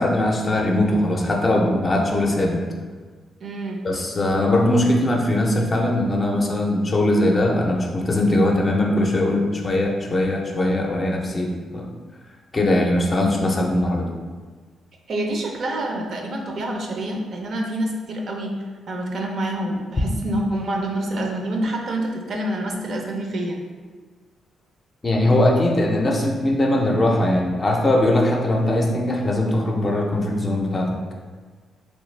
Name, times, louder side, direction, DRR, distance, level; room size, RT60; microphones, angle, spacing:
voice 1, 0.0-2.6 3.8-11.9 12.5-14.1 25.0-30.9, left 1 dB, 30° left, 1 dB, 0.5 m, -20 dB
voice 2, 3.4-3.9 15.1-23.6, right 1 dB, 55° right, 1 dB, 0.5 m, -27 dB
3.2 x 3.2 x 3.2 m, 1.5 s
cardioid pair, 115°, 0 cm